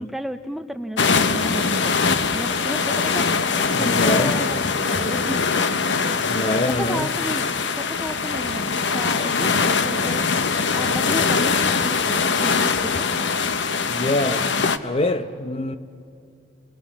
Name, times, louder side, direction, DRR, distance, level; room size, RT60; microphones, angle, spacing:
voice 1, 0.0-1.9 2.3-3.4 3.8-5.4 6.8-7.5 7.8-10.2 10.7-13.1, equal, ahead, 0.5 m, -33 dB
sound 1, 1.0-14.8, left 5 dB, 70° left, 0.8 m, -22 dB
voice 2, 3.7-4.4 6.3-7.1 13.9-14.5 14.8-15.8, left 2 dB, 30° left, 0.7 m, -24 dB
29.5 x 20.0 x 7.2 m
head